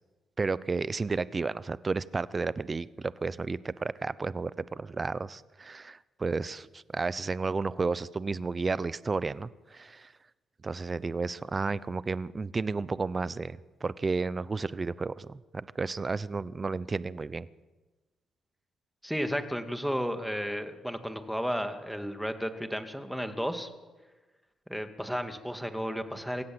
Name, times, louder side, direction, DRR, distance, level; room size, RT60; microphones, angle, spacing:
voice 1, 0.4-10.1 10.6-17.5, right 4 dB, 30° right, 18 dB, 0.7 m, -32 dB
voice 2, 19.0-23.7 24.7-26.4, equal, ahead, 7 dB, 2.3 m, -33 dB
26.0 x 16.5 x 7.9 m, 1.2 s
cardioid pair, 90°, 0 cm